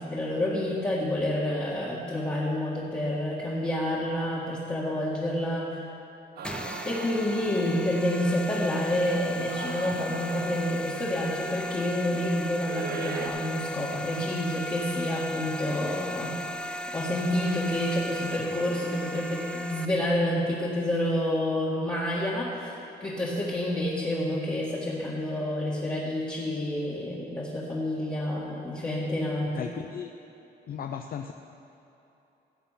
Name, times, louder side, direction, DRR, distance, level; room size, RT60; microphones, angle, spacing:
voice 1, 0.0-5.8 6.9-16.4 16.9-29.7, left 1 dB, 25° left, -7 dB, 2.0 m, -29 dB
sound 1, 6.4-19.9, left 1 dB, 5° left, 0.6 m, -37 dB
Small crowd reactions, 6.4-8.0 9.3-11.1 12.6-13.3, right 6 dB, 65° right, 1.0 m, -39 dB
voice 2, 29.5-30.1 30.7-31.3, left 8 dB, 60° left, 5 dB, 0.6 m, -35 dB
15.5 x 7.8 x 5.9 m, 2.9 s
cardioid pair, 110°, 18 cm